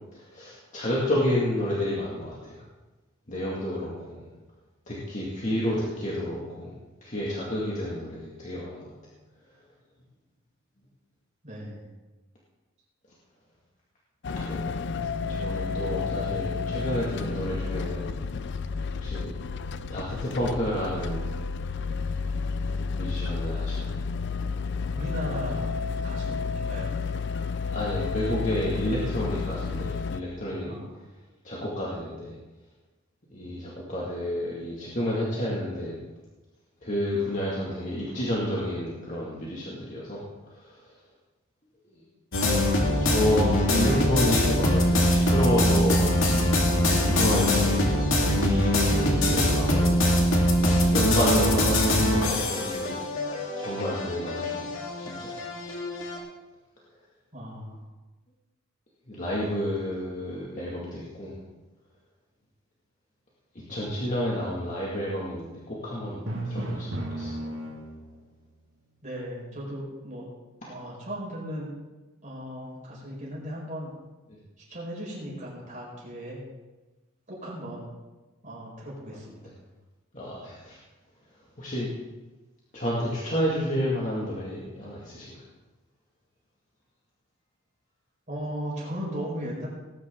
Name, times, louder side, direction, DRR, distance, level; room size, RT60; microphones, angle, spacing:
voice 1, 0.1-2.6 3.3-4.3 4.9-6.7 7.0-8.9 14.4-14.7 15.3-18.2 19.0-19.3 19.9-21.3 23.0-24.0 27.7-30.7 31.4-32.3 33.3-36.0 36.8-40.2 40.5-40.8 43.0-46.5 47.0-47.9 48.3-50.1 50.4-53.0 53.6-55.3 59.1-61.4 63.5-67.3 79.4-79.5 80.1-80.8 81.6-81.9 82.7-85.4, left 1 dB, 35° left, -5 dB, 2.1 m, -30 dB
voice 2, 11.4-11.8 15.0-15.2 24.9-26.9 30.6-31.0 57.3-57.8 69.0-70.3 70.7-71.7 72.2-73.9 74.7-76.4 77.3-77.9 78.4-79.4 88.3-89.7, equal, 35° right, -4 dB, 4.8 m, -37 dB
sound 1, 14.2-30.2, left 4 dB, 55° left, 0.4 m, -31 dB
sound 2, 42.3-56.2, left 1 dB, 75° left, 2.2 m, -23 dB
Drum, 66.3-68.3, right 1 dB, 65° right, 1.9 m, -33 dB
18.5 x 10.0 x 3.8 m, 1.1 s
head